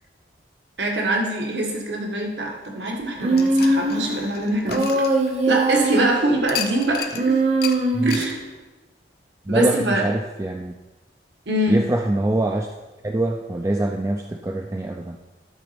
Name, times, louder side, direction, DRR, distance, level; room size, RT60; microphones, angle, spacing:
voice 1, 0.8-4.9 5.5-7.4 8.0-8.4 9.5-10.0 11.5-11.9, right 1 dB, 80° right, 0 dB, 1.5 m, -23 dB
Human voice, 3.2-4.2 4.7-6.3 7.1-8.4, right 2 dB, 35° right, 0.9 m, -21 dB
sound 1, 3.3-5.7 6.5-7.2 7.6-7.8 8.1-8.3, left 9 dB, 60° left, 0.6 m, -32 dB
voice 2, 9.5-10.7 11.7-12.7 13.0-15.3, right 1 dB, 15° right, 3 dB, 0.3 m, -24 dB
12.0 x 4.0 x 5.1 m, 1.1 s
head